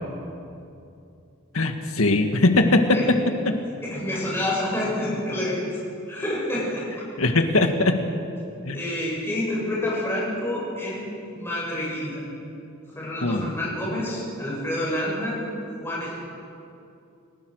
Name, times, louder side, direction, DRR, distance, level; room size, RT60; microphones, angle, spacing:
voice 1, 1.5-2.9 3.5-3.6 7.2-8.0 8.7-8.8 13.2-13.5, left 2 dB, 80° left, 5 dB, 1.8 m, -20 dB
voice 2, 3.8-5.6 6.1-6.8 7.5-7.7 8.7-11.1 11.3-12.2 13.0-15.4 15.8-16.1, left 1 dB, 10° left, -6 dB, 7.3 m, -28 dB
29.5 x 16.5 x 6.5 m, 2.6 s
head